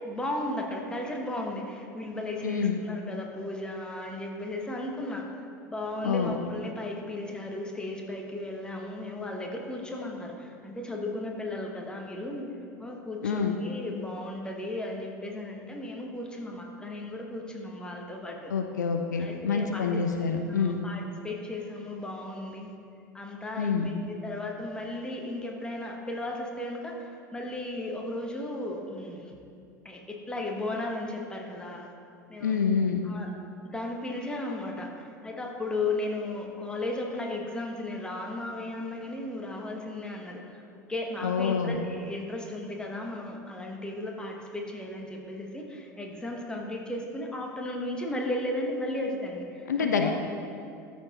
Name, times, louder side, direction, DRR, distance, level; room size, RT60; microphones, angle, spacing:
voice 1, 0.0-5.3 5.7-12.5 12.8-18.5 19.2-19.9 20.5-22.7 23.1-29.4 29.8-31.9 32.3-32.6 33.0-33.3 33.7-40.6 40.9-50.1, left 1 dB, 10° left, 0 dB, 1.2 m, -35 dB
voice 2, 2.4-2.8 6.0-6.3 13.2-13.6 18.5-20.8 23.6-23.9 32.4-33.0 41.2-41.8 49.7-50.1, left 6 dB, 70° left, 5 dB, 0.5 m, -27 dB
13.0 x 4.5 x 4.2 m, 2.5 s
figure-of-eight pair, 75°, 10 cm